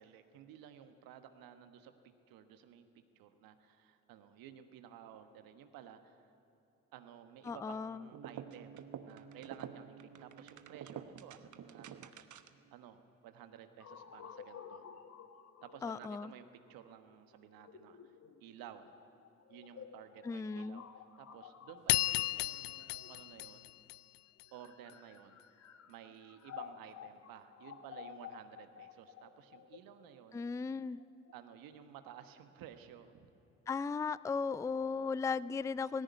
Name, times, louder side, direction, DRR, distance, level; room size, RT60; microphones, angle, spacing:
voice 1, 0.0-2.9 3.1-6.3 6.9-12.1 12.7-14.8 15.6-19.0 19.5-20.9 21.2-23.7 24.5-25.4 25.9-30.4 31.3-33.3, right 9 dB, 70° right, 9 dB, 1.3 m, -54 dB
voice 2, 7.5-8.0 15.8-16.3 20.2-20.8 30.3-31.0 33.7-36.0, left 5 dB, 10° left, 19 dB, 0.4 m, -36 dB
sound 1, 8.1-12.7, right 8 dB, 50° right, 1.1 m, -49 dB
sound 2, 13.8-23.6 24.4-31.3, left 8 dB, 45° left, 1.3 m, -53 dB
sound 3, 21.9-24.4, left 20 dB, 80° left, 0.5 m, -34 dB
18.0 x 16.5 x 9.5 m, 3.0 s
hypercardioid pair, 45°, 36 cm